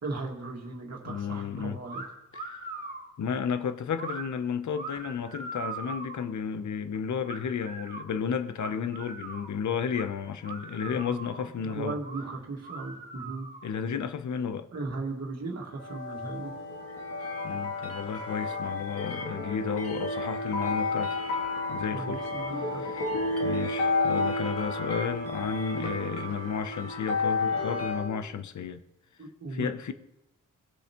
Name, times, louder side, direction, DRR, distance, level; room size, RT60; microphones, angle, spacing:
voice 1, 0.0-2.0 10.9-13.5 14.7-16.5 21.9-22.8 29.2-29.7, right 3 dB, 50° right, 2.0 m, -37 dB
voice 2, 1.1-1.8 2.3-2.5 3.2-12.0 13.6-14.7 17.4-21.2 21.7-22.2 22.6-23.1 23.4-28.8 29.5-29.9, left 7 dB, 60° left, 0.7 m, -32 dB
sound 1, 1.9-2.1 2.3-3.1 4.0-4.2 4.7-6.3 7.3-8.1 8.6-9.5 9.9-10.1 10.4-11.5 12.0-12.3 12.6-13.7, right 3 dB, 25° right, 1.8 m, -40 dB
sound 2, 15.8-28.1, left 2 dB, 85° left, 1.9 m, -31 dB
sound 3, 16.9-27.9, left 2 dB, 45° left, 1.1 m, -44 dB
18.5 x 6.8 x 3.0 m
wide cardioid pair, 165°, 33 cm